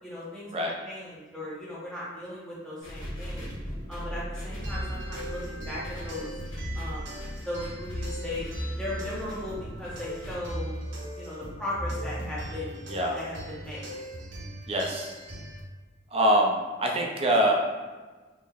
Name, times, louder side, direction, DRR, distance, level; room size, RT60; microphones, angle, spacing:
voice 1, 0.0-3.6 3.9-6.3 6.7-8.5 8.8-10.7 11.1-12.8 13.1-14.0, left 1 dB, 5° left, -9 dB, 0.9 m, -37 dB
sound 1, 2.8-10.4, equal, 90° left, 1.4 m, -39 dB
sound 2, 4.5-15.6, equal, 80° right, 0.8 m, -38 dB
voice 2, 14.7-15.1 16.1-17.5, right 1 dB, 30° right, 0 dB, 0.5 m, -24 dB
4.1 x 2.9 x 2.4 m, 1.3 s
head